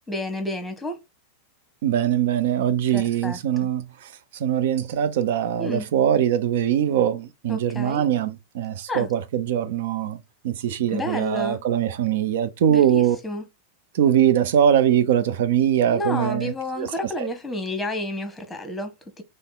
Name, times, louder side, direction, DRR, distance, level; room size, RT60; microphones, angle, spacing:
voice 1, 0.1-1.0 2.9-3.7 5.6-5.9 7.5-8.0 8.9-9.1 10.7-11.6 12.7-13.4 15.9-19.2, left 1 dB, 5° left, 1.2 m, -30 dB
voice 2, 1.8-13.2 13.9-16.9 17.2-17.3, right 10 dB, 55° right, 0.6 m, -22 dB
3.5 x 3.2 x 4.1 m
figure-of-eight pair, 90°, 0 cm